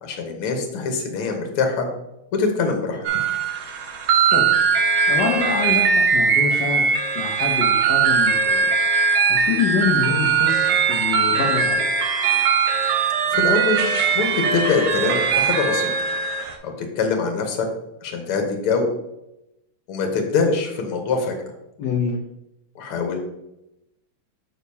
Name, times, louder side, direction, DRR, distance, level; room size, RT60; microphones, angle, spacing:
voice 1, 0.0-1.9 2.3-3.1 13.3-13.9 14.1-15.9 16.6-17.7 18.0-18.9 19.9-21.3 22.8-23.2, left 4 dB, 80° left, 3 dB, 1.9 m, -23 dB
sound 1, 3.0-16.5, right 6 dB, 70° right, 1.5 m, -20 dB
voice 2, 5.1-6.8 7.1-8.7 9.3-11.9 21.8-22.2, left 6 dB, 65° left, -1 dB, 1.3 m, -25 dB
6.8 x 6.5 x 2.7 m, 0.87 s
omnidirectional pair, 2.4 m